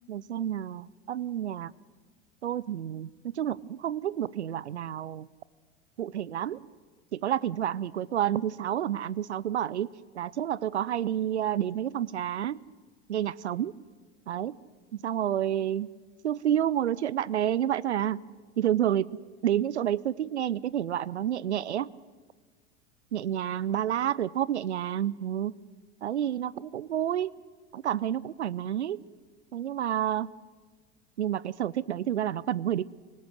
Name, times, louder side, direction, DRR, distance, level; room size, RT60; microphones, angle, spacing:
voice 1, 0.1-1.7 2.4-5.3 6.0-6.6 7.1-9.9 10.1-12.6 13.1-13.7 14.3-14.6 14.9-15.9 16.2-18.2 18.6-19.1 19.4-21.9 23.1-25.5 26.0-27.3 27.7-29.0 29.5-30.3 31.2-32.9, right 11 dB, 75° right, 23 dB, 0.6 m, -29 dB
26.5 x 18.0 x 6.3 m, 1.4 s
figure-of-eight pair, 85°, 34 cm